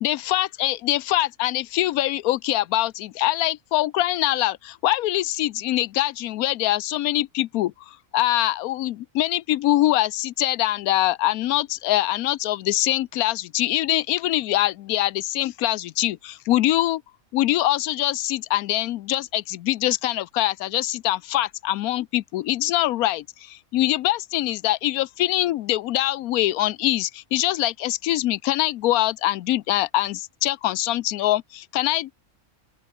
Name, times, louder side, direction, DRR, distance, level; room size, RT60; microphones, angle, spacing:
voice 1, 0.0-17.0 17.3-32.1, left 15 dB, 80° left, 1.1 m, -23 dB
open air
omnidirectional pair, 1.5 m